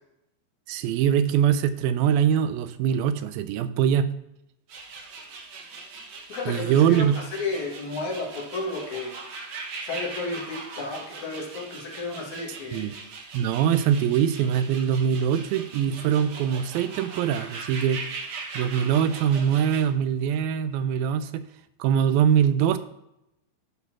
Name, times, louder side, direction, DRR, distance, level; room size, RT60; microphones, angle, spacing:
voice 1, 0.7-4.1 6.5-7.2 12.7-12.9 13.3-18.0 18.6-21.4 21.8-22.8, right 9 dB, 90° right, 12 dB, 2.5 m, -23 dB
sound 1, 4.7-19.8, right 4 dB, 55° right, 2.2 m, -40 dB
voice 2, 6.3-9.1 9.8-12.9 13.8-13.9, left 3 dB, 60° left, -1 dB, 2.9 m, -32 dB
12.5 x 4.1 x 6.0 m, 0.84 s
omnidirectional pair, 4.1 m